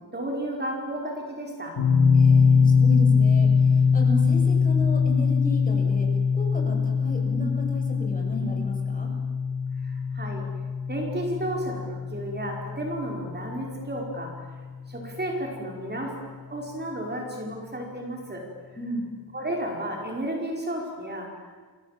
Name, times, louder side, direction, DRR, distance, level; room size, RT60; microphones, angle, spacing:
voice 1, 0.1-1.8 9.8-10.5 10.9-14.3 14.9-16.2 16.5-18.5 19.3-21.3, right 1 dB, 25° right, 0 dB, 5.0 m, -32 dB
sound 1, 1.8-14.7, left 5 dB, 80° left, 3.4 m, -22 dB
voice 2, 2.2-9.1 18.8-19.1, left 1 dB, 20° left, 1 dB, 6.9 m, -34 dB
30.0 x 25.0 x 7.5 m, 1.5 s
wide cardioid pair, 130°, 37 cm